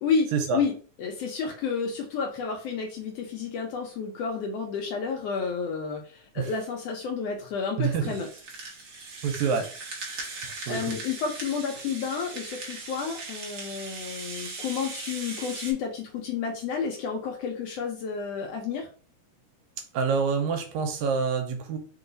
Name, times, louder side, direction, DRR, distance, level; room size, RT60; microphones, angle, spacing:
voice 1, 0.0-8.3 10.3-18.9, left 5 dB, 75° left, 2 dB, 1.5 m, -31 dB
voice 2, 7.8-8.1 9.2-9.7 10.7-11.0 19.9-21.8, right 5 dB, 80° right, 5 dB, 2.0 m, -26 dB
Rattle (instrument), 8.0-15.7, right 3 dB, 55° right, 1.2 m, -39 dB
4.7 x 2.4 x 3.8 m, 0.41 s
omnidirectional pair, 3.4 m